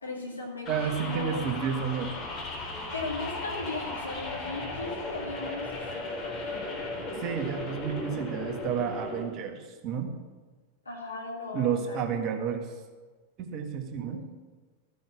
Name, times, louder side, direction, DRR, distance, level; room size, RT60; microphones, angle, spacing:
voice 1, 0.0-1.5 2.9-6.6 10.9-12.2 14.1-14.3, left 3 dB, 80° left, -1 dB, 2.4 m, -37 dB
sound 1, 0.6-9.2, left 2 dB, 30° left, 3.4 m, -36 dB
voice 2, 0.7-2.1 7.2-10.1 11.5-12.7 13.4-14.2, right 7 dB, 35° right, 2 dB, 1.7 m, -31 dB
14.0 x 6.3 x 7.1 m, 1.4 s
figure-of-eight pair, 90°, 0 cm